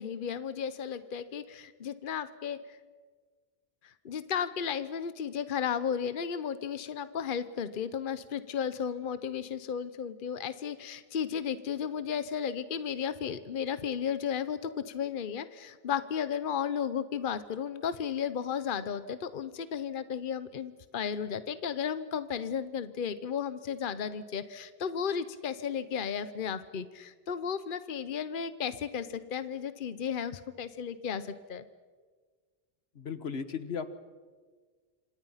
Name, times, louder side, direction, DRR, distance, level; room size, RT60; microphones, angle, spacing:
voice 1, 0.0-2.8 3.8-31.6, left 7 dB, 55° left, 13 dB, 1.0 m, -34 dB
voice 2, 33.0-33.9, left 6 dB, 85° left, 12 dB, 1.6 m, -36 dB
27.0 x 26.0 x 5.7 m, 1.5 s
omnidirectional pair, 1.0 m